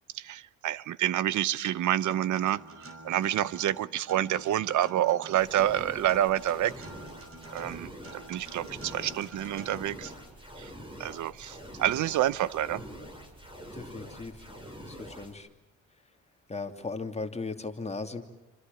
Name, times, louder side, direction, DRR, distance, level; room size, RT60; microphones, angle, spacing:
voice 1, 0.1-6.9 7.5-10.1 10.6-10.7 11.0-12.8, right 12 dB, 75° right, 19 dB, 0.9 m, -28 dB
Acoustic guitar, 2.1-10.1, right 2 dB, 45° right, 6.1 m, -47 dB
sound 1, 5.3-15.3, equal, 15° right, 7.5 m, -45 dB
voice 2, 13.7-14.6 14.9-15.5 16.5-18.2, left 3 dB, 20° left, 5 dB, 2.8 m, -37 dB
28.5 x 26.5 x 7.1 m, 1.0 s
cardioid pair, 90°, 30 cm